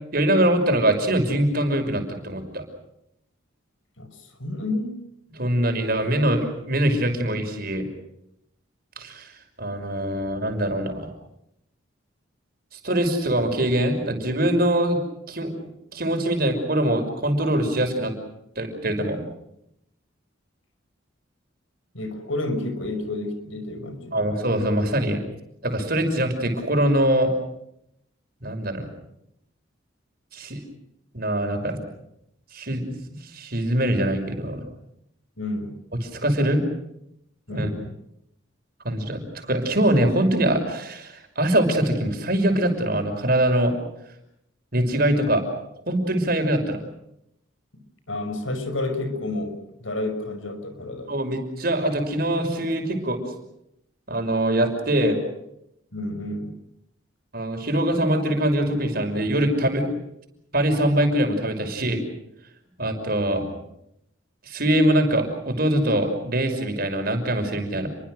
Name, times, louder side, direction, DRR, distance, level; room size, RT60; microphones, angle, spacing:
voice 1, 0.1-2.6 5.3-7.9 9.0-9.3 9.6-11.1 12.7-15.0 15.3-18.1 18.6-19.2 24.1-25.2 25.6-27.3 28.4-28.9 30.3-30.6 31.1-31.8 32.5-32.8 33.2-34.6 36.0-36.6 37.5-37.7 38.8-39.2 39.5-43.7 44.7-45.4 45.9-46.8 51.1-53.2 54.1-55.2 57.3-59.9 60.5-62.0 62.8-63.6 64.4-67.9, right 1 dB, 50° right, 5 dB, 5.9 m, -23 dB
voice 2, 4.0-5.0 21.9-24.2 35.4-35.8 37.5-37.9 48.1-51.1 55.9-56.6, left 2 dB, 80° left, 9 dB, 5.7 m, -30 dB
29.5 x 24.0 x 6.5 m, 0.80 s
head